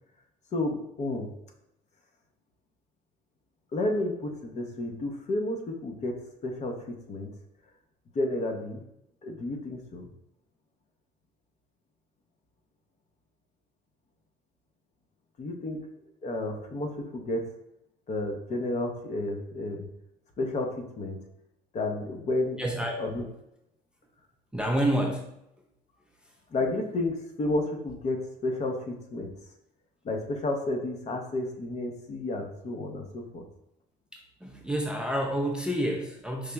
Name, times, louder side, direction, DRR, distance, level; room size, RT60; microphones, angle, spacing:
voice 1, 0.5-1.3 3.7-7.3 8.1-8.8 9.2-10.1 15.4-15.8 16.2-17.4 18.1-19.9 20.4-21.2 21.7-22.6 23.0-23.3 26.5-29.3 30.0-33.4, left 2 dB, 40° left, 3 dB, 0.7 m, -31 dB
voice 2, 22.6-23.1 24.5-25.3 34.1-36.5, right 1 dB, 5° right, 0 dB, 0.4 m, -29 dB
4.8 x 2.8 x 2.2 m, 0.82 s
cardioid pair, 110°, 17 cm